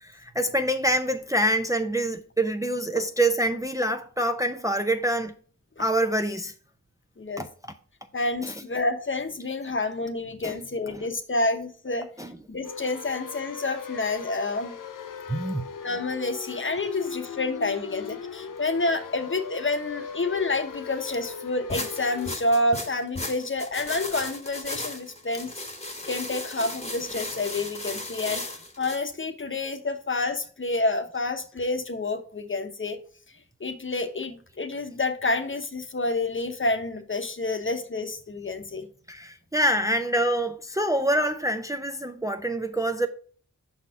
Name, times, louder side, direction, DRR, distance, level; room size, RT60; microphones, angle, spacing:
voice 1, 0.0-5.3 5.8-6.5 7.4-7.5 10.4-10.5 12.2-12.3 15.3-15.6 39.1-43.1, right 1 dB, 10° right, 0.5 m, -26 dB
voice 2, 8.1-12.1 12.5-14.8 15.8-25.5 26.0-28.4 28.8-33.0 33.6-38.9, left 2 dB, 40° left, 0.9 m, -28 dB
sound 1, 12.6-22.4, left 6 dB, 85° left, 0.6 m, -38 dB
sound 2, 21.7-29.0, left 2 dB, 20° left, 1.1 m, -35 dB
5.5 x 4.2 x 4.7 m
cardioid pair, 50°, 31 cm